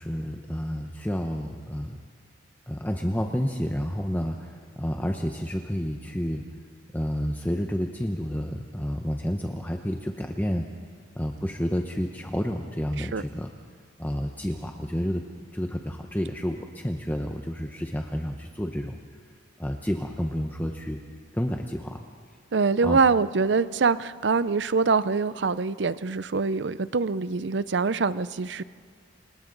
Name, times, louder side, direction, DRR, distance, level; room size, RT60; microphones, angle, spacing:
voice 1, 0.0-2.0 2.7-6.4 6.9-10.7 11.1-13.5 14.0-15.2 15.5-19.0 19.6-21.0 21.3-22.0 22.8-23.0, equal, 10° left, 3 dB, 0.8 m, -30 dB
voice 2, 22.5-28.6, right 4 dB, 65° right, 16 dB, 0.5 m, -24 dB
29.0 x 26.5 x 4.0 m, 2.1 s
head